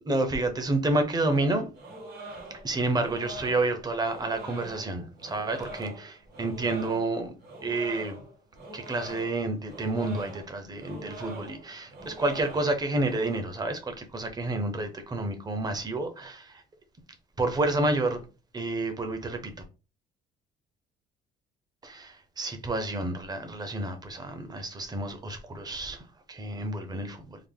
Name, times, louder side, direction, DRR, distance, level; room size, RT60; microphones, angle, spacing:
voice 1, 0.0-1.7 2.5-7.3 7.6-8.2 8.7-16.6 17.4-18.2 18.5-19.5 21.8-27.4, right 2 dB, 25° right, 0.8 m, -29 dB
sound 1, 1.3-13.4, right 1 dB, 65° right, 2.0 m, -44 dB
3.8 x 2.0 x 3.5 m
cardioid pair, 110°, 17 cm